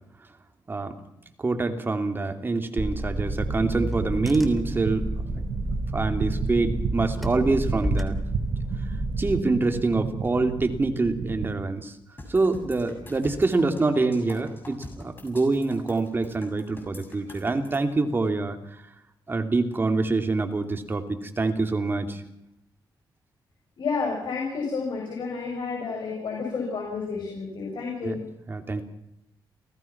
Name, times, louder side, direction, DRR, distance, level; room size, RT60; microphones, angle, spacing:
voice 1, 1.4-5.1 5.9-8.2 9.2-12.0 12.3-18.6 19.3-22.2 28.0-28.2 28.5-28.8, right 3 dB, 25° right, 6 dB, 2.7 m, -25 dB
Car / Engine, 2.8-9.4, equal, ahead, 3.2 m, -31 dB
sound 1, 3.2-11.5, right 6 dB, 85° right, 1.9 m, -32 dB
sound 2, 12.2-17.8, left 1 dB, 25° left, 7.1 m, -43 dB
voice 2, 23.8-28.2, left 4 dB, 70° left, -1 dB, 6.9 m, -30 dB
30.0 x 18.0 x 6.0 m, 0.80 s
wide cardioid pair, 135°, 8 cm